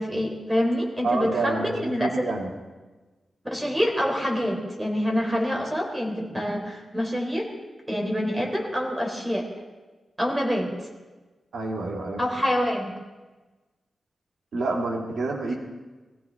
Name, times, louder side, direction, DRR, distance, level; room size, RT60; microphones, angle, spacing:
voice 1, 0.0-2.3 3.4-7.5 7.9-9.4 10.2-10.9 12.2-12.9, equal, 10° right, -1 dB, 4.0 m, -26 dB
voice 2, 1.0-2.5 11.5-12.2 14.5-15.5, right 3 dB, 90° right, 0 dB, 2.2 m, -28 dB
23.0 x 15.5 x 3.5 m, 1.2 s
wide cardioid pair, 135°, 0 cm